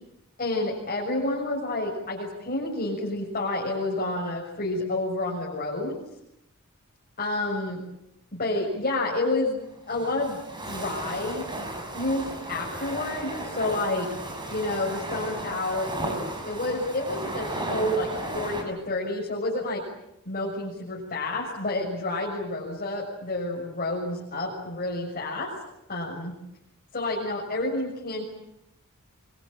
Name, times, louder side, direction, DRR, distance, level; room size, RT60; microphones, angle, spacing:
voice 1, 0.4-6.0 7.2-7.8 8.3-9.6 9.9-10.4 10.6-11.4 11.9-14.1 14.5-15.9 16.4-19.8 20.2-25.5 25.9-26.3 26.9-28.2, left 2 dB, 40° left, -3 dB, 6.8 m, -29 dB
sound 1, 9.6-18.6, right 1 dB, 20° right, 6.4 m, -34 dB
27.0 x 24.0 x 9.1 m, 0.82 s
head